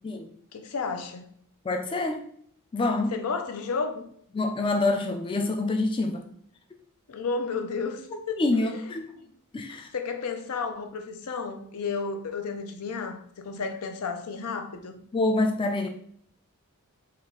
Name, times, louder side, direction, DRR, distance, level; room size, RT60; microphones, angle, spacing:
voice 1, 0.5-1.3 3.1-4.0 7.1-8.9 9.2-9.3 9.7-15.0, left 4 dB, 85° left, 0.6 m, -32 dB
voice 2, 1.6-2.2 2.7-3.1 4.3-6.3 8.4-9.1 9.5-9.9 15.1-15.9, left 2 dB, 25° left, 0.3 m, -26 dB
4.4 x 2.4 x 3.7 m
head